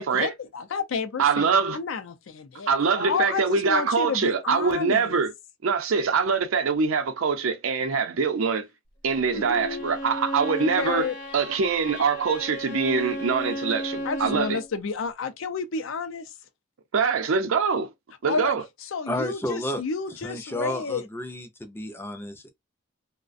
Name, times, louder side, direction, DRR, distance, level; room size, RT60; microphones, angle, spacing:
voice 1, 0.0-5.2 9.3-9.9 10.6-11.1 14.0-16.3 18.3-18.5 18.9-21.0, left 5 dB, 70° left, 0.4 m, -31 dB
voice 2, 1.2-1.8 2.7-5.3 5.6-8.7 9.0-14.6 16.9-17.9 18.2-18.6, right 5 dB, 80° right, 0.5 m, -24 dB
Bowed string instrument, 9.3-14.7, equal, 40° left, 0.9 m, -34 dB
voice 3, 19.1-19.8 20.2-22.5, left 1 dB, 10° left, 0.4 m, -32 dB
2.4 x 2.1 x 2.5 m
head